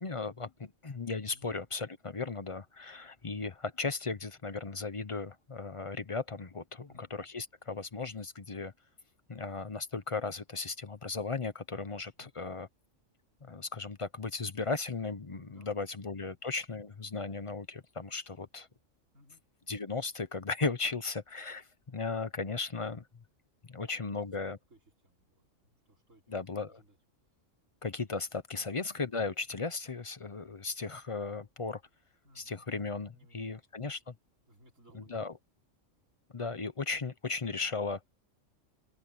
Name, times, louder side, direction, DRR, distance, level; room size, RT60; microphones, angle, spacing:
voice 1, 0.0-8.7 9.3-12.7 13.4-18.7 19.7-23.1 23.7-24.6 26.3-26.8 27.8-31.8 32.4-34.1 34.9-35.3 36.3-38.1, left 4 dB, 30° left, 0.7 m, -36 dB
voice 2, 15.5-15.9 16.2-16.4 19.1-19.4 23.7-24.1 24.4-27.0 28.5-28.8 32.2-32.7 33.1-33.6 34.5-35.3 37.5-37.7, equal, 85° right, 5.2 m, -63 dB
open air
omnidirectional pair, 1.3 m